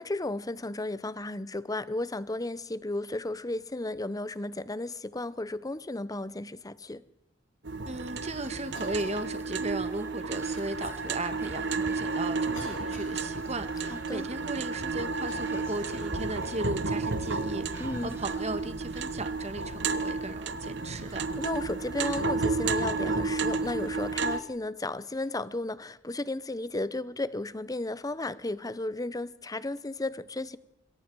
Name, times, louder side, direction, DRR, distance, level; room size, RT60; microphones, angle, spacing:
voice 1, 0.0-7.0 13.9-14.3 17.8-18.2 21.1-30.6, left 2 dB, 20° left, 0.8 m, -34 dB
sound 1, 7.6-24.4, right 3 dB, 65° right, 1.3 m, -32 dB
voice 2, 7.9-21.3, right 2 dB, 35° right, 1.5 m, -36 dB
Whispering, 8.3-14.3 14.7-18.6 19.1-19.2, right 1 dB, 15° right, 5.4 m, -49 dB
Cough, 8.7-9.3 10.6-10.8 11.6-11.7 12.5-13.2 15.1-15.8 16.2-16.5 17.6-17.9 18.9-19.3 20.8-21.1 23.3-23.4 25.1-25.3, left 2 dB, 80° left, 6.3 m, -50 dB
27.0 x 22.0 x 4.7 m
head